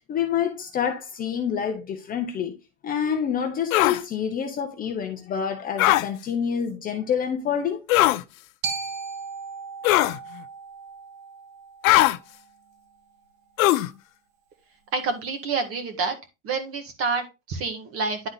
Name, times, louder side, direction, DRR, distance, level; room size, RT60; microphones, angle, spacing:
voice 1, 0.1-2.6 2.8-7.9, left 8 dB, 20° left, 0.7 m, -27 dB
sound 1, 3.7-4.0 5.8-6.1 7.9-8.2 9.8-10.2 11.8-12.2 13.6-13.9, left 16 dB, 75° left, 0.7 m, -19 dB
Glockenspiel, 8.6-12.8, right 5 dB, 65° right, 1.9 m, -36 dB
voice 2, 14.9-16.2 16.4-18.3, right 4 dB, 30° right, 1.8 m, -28 dB
10.5 x 3.9 x 4.0 m
supercardioid pair, 155°, 42 cm